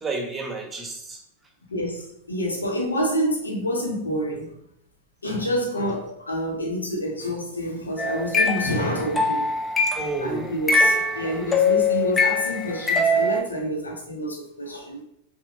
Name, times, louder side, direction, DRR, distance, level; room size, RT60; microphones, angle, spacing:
voice 1, 0.0-1.2 9.9-11.0, right 3 dB, 15° right, 2 dB, 1.3 m, -31 dB
voice 2, 1.7-4.6 5.2-9.5 10.2-15.0, equal, 75° left, 0 dB, 1.4 m, -28 dB
sound 1, 8.0-10.2 10.7-13.4, left 2 dB, 15° left, 0.6 m, -22 dB
6.1 x 3.6 x 4.9 m, 0.75 s
figure-of-eight pair, 90°, 0 cm